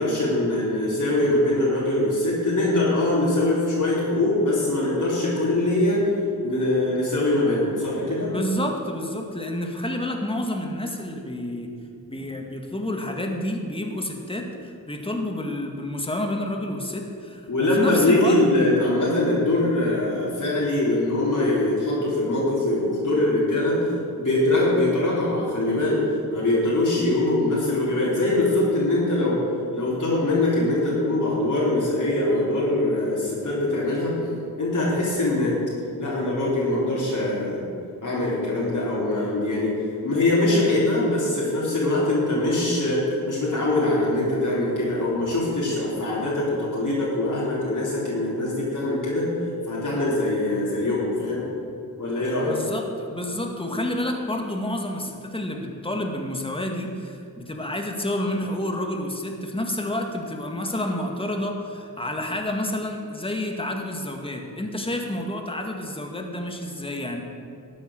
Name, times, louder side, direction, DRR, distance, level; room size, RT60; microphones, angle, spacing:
voice 1, 0.0-6.1 6.4-8.3 17.5-23.8 24.2-26.0 26.3-29.4 29.7-34.2 34.6-35.6 36.0-37.6 38.0-39.7 40.0-49.3 49.7-51.4 52.0-52.6, left 2 dB, 55° left, -8 dB, 3.9 m, -23 dB
voice 2, 8.3-11.7 12.1-18.4 52.4-67.2, left 1 dB, 15° left, 2 dB, 2.0 m, -29 dB
13.5 x 8.6 x 6.6 m, 2.5 s
cardioid pair, 60°, 37 cm